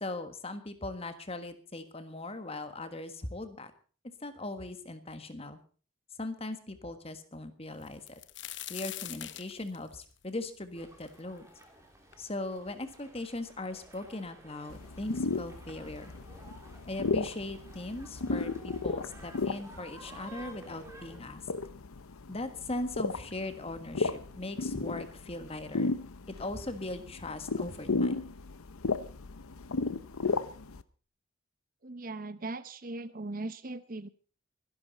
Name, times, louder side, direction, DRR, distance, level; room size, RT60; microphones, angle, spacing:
voice 1, 0.0-3.7 4.0-5.6 6.2-8.2 8.7-11.5 12.2-16.1 16.9-21.4 22.3-25.9 26.4-28.1, left 2 dB, 30° left, 9 dB, 1.5 m, -39 dB
sound 1, 7.8-11.6 12.1-12.2 13.0-13.1 13.3-14.0 14.9-15.0 15.4-15.6, left 13 dB, 55° left, 0.9 m, -43 dB
sound 2, 10.7-21.2, right 2 dB, 15° right, 2.9 m, -53 dB
sound 3, 14.7-30.8, left 3 dB, 90° left, 0.8 m, -35 dB
voice 2, 31.8-34.1, right 2 dB, 40° right, 14 dB, 0.8 m, -39 dB
24.5 x 11.0 x 4.1 m, 0.40 s
head